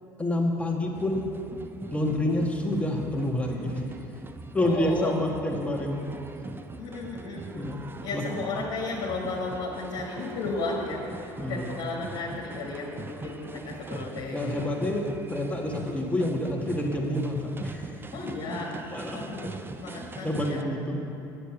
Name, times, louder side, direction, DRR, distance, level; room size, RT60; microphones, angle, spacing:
voice 1, 0.2-1.3 1.9-3.8 4.5-6.0 7.5-7.8 8.1-8.2 11.4-11.7 14.3-17.9 18.9-19.2 19.8-21.2, left 1 dB, 10° left, 0 dB, 1.7 m, -28 dB
sound 1, 0.9-20.6, right 3 dB, 20° right, 0.5 m, -42 dB
voice 2, 4.6-5.1 6.8-7.5 8.0-14.5 18.1-18.8 19.1-19.5 19.8-20.6, left 3 dB, 70° left, -4 dB, 1.5 m, -34 dB
8.2 x 7.9 x 5.9 m, 3.0 s
hypercardioid pair, 70°, 11 cm